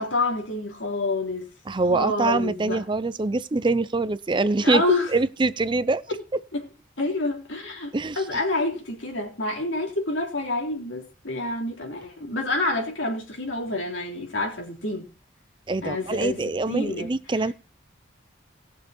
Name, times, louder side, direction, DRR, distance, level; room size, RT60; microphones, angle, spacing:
voice 1, 0.0-1.5 1.9-2.8 4.6-5.1 6.5-6.6 7.0-15.1 15.8-16.4 16.7-17.1, left 2 dB, 80° left, 3.9 m, -28 dB
voice 2, 1.7-4.8 5.1-6.0 7.9-8.4 15.7-17.5, right 3 dB, 25° right, 0.5 m, -24 dB
19.5 x 6.7 x 4.3 m
head